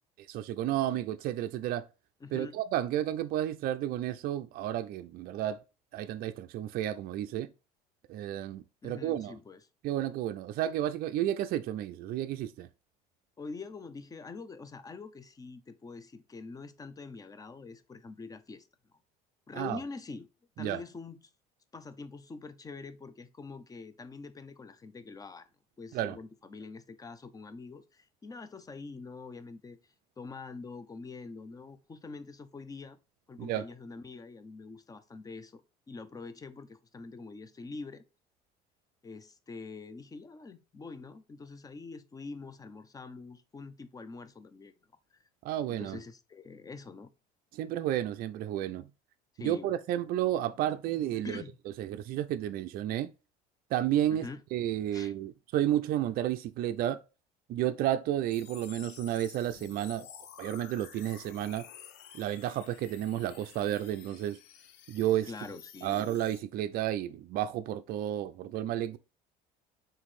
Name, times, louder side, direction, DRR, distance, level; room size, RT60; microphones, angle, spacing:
voice 1, 0.3-1.9 2.3-5.6 5.9-7.5 8.1-9.3 9.8-12.7 19.5-19.8 20.6-20.8 25.9-26.2 33.4-33.7 45.4-46.0 47.5-48.9 49.4-51.4 51.8-53.1 53.7-57.0 57.5-60.1 60.4-61.7 62.1-64.4 64.9-65.3 65.8-69.0, right 12 dB, 55° right, 0.4 m, -32 dB
voice 2, 2.2-2.6 8.8-9.6 13.4-18.7 19.5-20.3 20.6-21.2 21.7-25.5 25.8-29.8 30.2-33.0 33.3-35.6 35.9-38.0 39.0-44.7 45.7-47.1 49.3-49.7 51.2-51.6 54.1-54.4 54.9-55.1 65.3-66.1, left 4 dB, 20° left, 0.5 m, -45 dB
sound 1, 58.3-66.4, left 9 dB, 65° left, 0.7 m, -51 dB
3.8 x 3.0 x 4.1 m
supercardioid pair, 90°, 19 cm